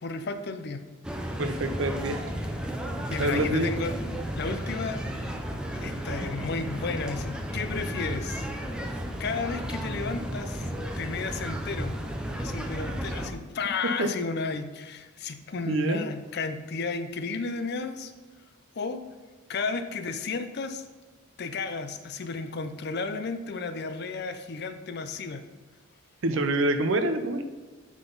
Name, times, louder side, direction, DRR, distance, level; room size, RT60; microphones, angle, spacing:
voice 1, 0.0-0.8 3.1-3.9 4.4-5.4 5.7-8.5 9.2-10.7 11.0-11.9 12.4-18.1 18.8-19.0 19.5-20.9 21.4-25.4, left 4 dB, 50° left, 9 dB, 0.5 m, -33 dB
sound 1, 1.0-13.3, equal, 5° right, 0.5 m, -33 dB
voice 2, 1.4-2.2 3.2-3.7 14.0-14.1 15.7-16.0 26.2-27.4, right 2 dB, 60° right, 8 dB, 0.6 m, -26 dB
9.0 x 3.9 x 3.9 m, 1.3 s
head